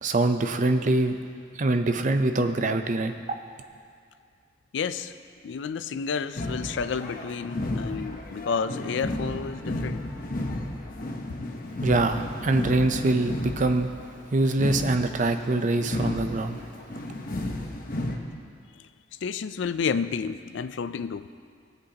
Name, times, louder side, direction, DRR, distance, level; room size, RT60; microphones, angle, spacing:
voice 1, 0.0-1.2 1.5-3.1 11.8-13.9 14.3-16.7, right 2 dB, 45° right, 7 dB, 0.6 m, -24 dB
voice 2, 4.7-5.1 5.4-10.0 19.2-21.3, left 6 dB, 80° left, 13 dB, 0.4 m, -30 dB
sound 1, 6.4-18.2, left 1 dB, 50° left, 0.9 m, -33 dB
18.5 x 8.1 x 2.9 m, 2.2 s
head